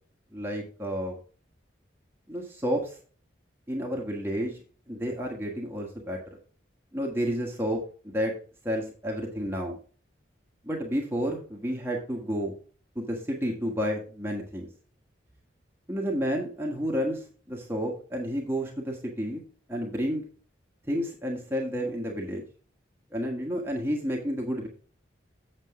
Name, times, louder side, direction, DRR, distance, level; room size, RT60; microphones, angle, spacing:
voice 1, 0.3-1.2 2.3-3.0 3.7-4.6 4.9-6.2 6.9-8.3 8.6-9.8 10.6-12.5 12.9-14.7 15.9-19.4 19.7-20.2 20.9-22.4 23.1-24.7, equal, 10° right, -1 dB, 1.4 m, -30 dB
7.6 x 7.3 x 3.7 m, 0.40 s
head